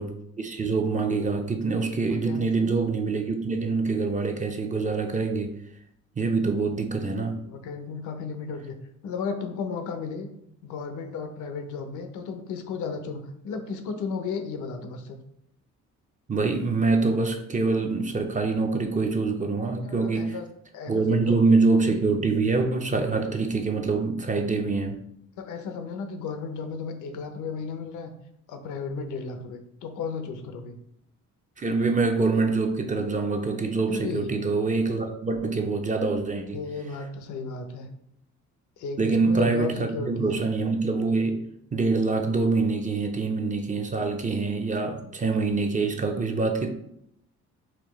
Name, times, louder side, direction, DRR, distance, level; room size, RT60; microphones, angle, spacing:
voice 1, 0.0-5.6 6.2-7.5 16.3-20.4 20.9-25.0 31.6-36.6 39.0-41.5 41.7-46.7, right 3 dB, 25° right, 4 dB, 0.5 m, -25 dB
voice 2, 2.1-2.7 7.4-8.8 9.0-10.3 10.6-15.2 19.8-20.4 20.7-21.4 21.8-22.0 25.4-28.1 28.5-30.8 33.9-34.3 36.5-37.9 38.8-40.3, left 5 dB, 80° left, 7 dB, 0.7 m, -34 dB
4.2 x 2.7 x 3.0 m, 0.75 s
cardioid pair, 90°, 30 cm